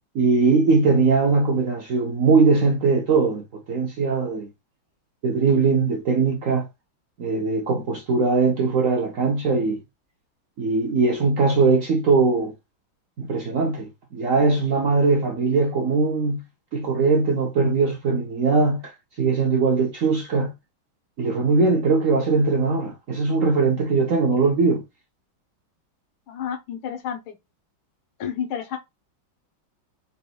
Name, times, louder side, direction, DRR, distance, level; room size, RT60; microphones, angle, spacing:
voice 1, 0.1-4.5 5.2-6.7 7.2-9.8 10.6-12.5 13.2-16.4 16.7-20.5 21.2-24.8, right 4 dB, 65° right, 0.8 m, -20 dB
voice 2, 26.3-27.4 28.2-28.8, left 8 dB, 85° left, 1.9 m, -30 dB
4.2 x 3.9 x 2.2 m
omnidirectional pair, 2.2 m